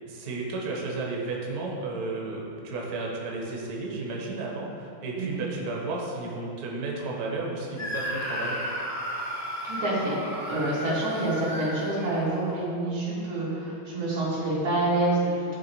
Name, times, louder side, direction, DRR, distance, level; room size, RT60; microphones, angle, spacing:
voice 1, 0.1-8.7, right 3 dB, 55° right, -2 dB, 1.3 m, -33 dB
Screaming, 7.8-12.6, equal, 25° left, 0.3 m, -34 dB
voice 2, 9.3-10.2 10.5-15.6, right 2 dB, 85° right, -8 dB, 2.9 m, -27 dB
10.0 x 3.5 x 4.5 m, 2.6 s
omnidirectional pair, 2.3 m